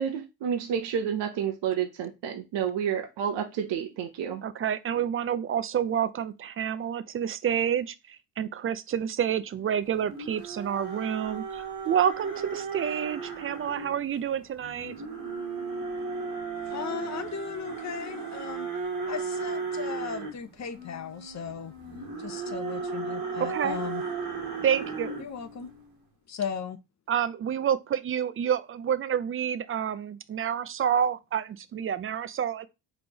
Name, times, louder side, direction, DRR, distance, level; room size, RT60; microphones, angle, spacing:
voice 1, 0.0-4.4, right 8 dB, 65° right, 0.9 m, -30 dB
voice 2, 4.4-15.0 23.4-23.8 24.6-25.1 27.1-32.7, right 9 dB, 30° right, 0.4 m, -29 dB
sound 1, 9.9-14.0 14.6-25.7, right 4 dB, 45° right, 2.0 m, -35 dB
voice 3, 16.7-18.7 19.1-21.7 22.2-24.0 25.2-25.7 26.3-26.8, left 7 dB, 35° left, 0.7 m, -36 dB
4.1 x 3.4 x 2.8 m
cardioid pair, 95°, 46 cm